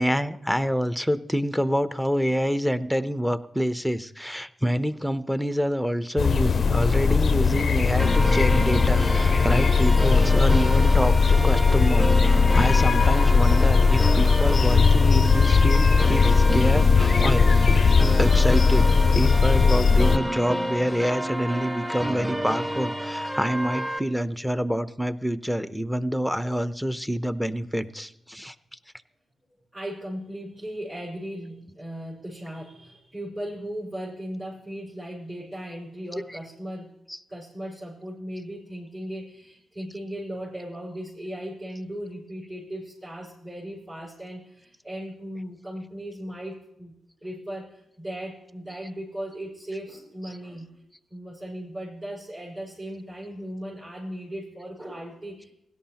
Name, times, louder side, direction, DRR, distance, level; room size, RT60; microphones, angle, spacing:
voice 1, 0.0-17.8 18.2-18.9 19.2-28.5 36.3-36.4 37.1-37.2, equal, ahead, 12 dB, 0.7 m, -27 dB
sound 1, 6.2-20.2, left 5 dB, 55° left, 0.5 m, -19 dB
sound 2, 8.0-24.0, equal, 20° right, 1.5 m, -30 dB
voice 2, 29.7-36.9 37.3-46.9 47.2-50.8 51.1-55.5, equal, 40° right, -4 dB, 5.0 m, -37 dB
17.0 x 11.0 x 2.9 m, 0.78 s
supercardioid pair, 55°, 0 cm